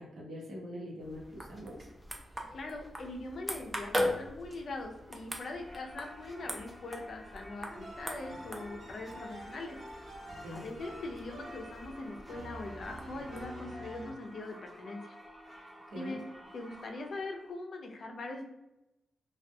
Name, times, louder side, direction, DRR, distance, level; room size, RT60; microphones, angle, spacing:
voice 1, 0.0-1.9 10.4-10.6 15.9-16.2, equal, 85° right, -4 dB, 0.9 m, -43 dB
sound 1, 1.0-13.4, equal, 10° right, 0.4 m, -41 dB
voice 2, 2.5-10.1 10.5-15.2 15.5-15.7 15.9-16.2 16.5-18.4, left 2 dB, 60° left, 2 dB, 0.4 m, -42 dB
Singing / Church bell, 5.6-17.5, left 1 dB, 15° left, 0.8 m, -51 dB
sound 2, 7.7-14.1, right 1 dB, 60° right, 0.9 m, -48 dB
2.3 x 2.2 x 2.6 m, 0.93 s
cardioid pair, 105°, 0 cm